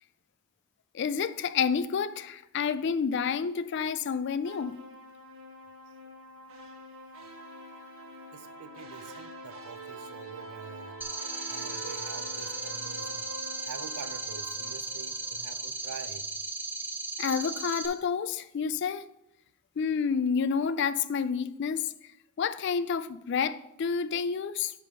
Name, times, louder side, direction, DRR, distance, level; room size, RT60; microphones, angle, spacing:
voice 1, 0.9-4.8 17.2-19.0 19.8-21.8 22.4-24.7, left 6 dB, 55° left, 0.3 m, -29 dB
sound 1, 4.4-15.7, right 1 dB, 70° right, 1.1 m, -45 dB
voice 2, 8.3-11.0 11.5-13.3 13.6-16.3, right 5 dB, 90° right, 0.5 m, -46 dB
sound 2, 11.0-17.9, right 2 dB, 10° right, 0.5 m, -36 dB
9.1 x 3.4 x 5.4 m
head